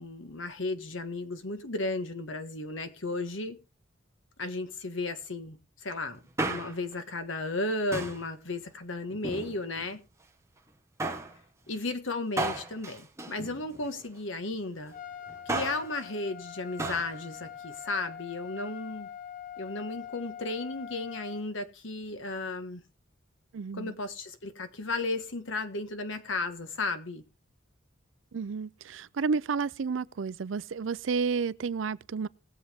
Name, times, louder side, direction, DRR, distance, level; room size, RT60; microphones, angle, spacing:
voice 1, 0.0-3.6 4.4-10.0 11.7-14.9 15.4-19.1 19.6-22.8 23.7-27.2, left 2 dB, 75° left, 1.5 m, -34 dB
Male speech man speaking, 6.2-7.0 7.9-8.3 9.1-9.9 11.0-11.4 12.4-14.0 15.3-15.9 16.8-17.1 17.4-17.5, right 2 dB, 15° right, 1.3 m, -34 dB
Trumpet, 14.9-21.4, left 9 dB, 45° left, 0.8 m, -44 dB
voice 2, 23.5-23.9 28.3-32.3, right 5 dB, 75° right, 0.5 m, -31 dB
20.0 x 7.4 x 3.5 m
head